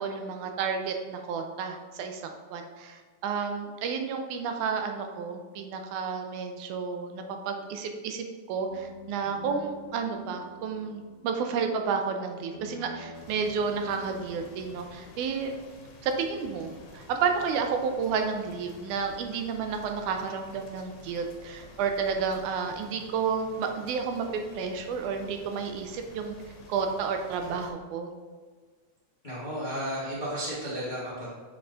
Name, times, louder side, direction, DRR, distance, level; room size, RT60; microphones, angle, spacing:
voice 1, 0.0-15.5 16.0-26.4 26.7-28.1, right 5 dB, 90° right, 5 dB, 2.1 m, -31 dB
sound 1, 8.7-15.2, left 1 dB, 25° left, 1.1 m, -48 dB
sound 2, 13.1-27.7, left 2 dB, 75° left, 2.2 m, -51 dB
voice 2, 29.2-31.3, equal, 60° left, -9 dB, 0.5 m, -33 dB
6.9 x 5.3 x 2.5 m, 1.4 s
omnidirectional pair, 3.5 m